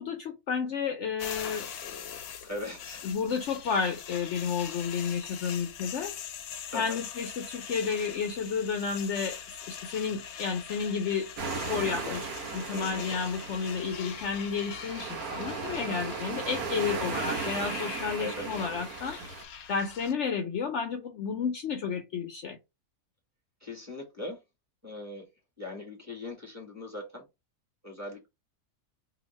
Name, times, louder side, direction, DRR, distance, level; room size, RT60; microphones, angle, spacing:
voice 1, 0.0-2.2 3.0-6.1 6.7-9.4 9.7-11.3 11.7-19.2 19.7-22.6, left 6 dB, 65° left, 0.8 m, -31 dB
sound 1, 1.2-20.1, left 8 dB, 90° left, 1.2 m, -42 dB
voice 2, 2.4-3.1 6.7-7.0 12.7-13.1 18.2-18.7 23.6-24.4 24.8-25.2 25.6-27.2 27.8-28.3, left 2 dB, 10° right, 1.4 m, -40 dB
sound 2, 11.4-19.4, right 5 dB, 85° right, 1.3 m, -36 dB
2.9 x 2.5 x 4.1 m
omnidirectional pair, 1.5 m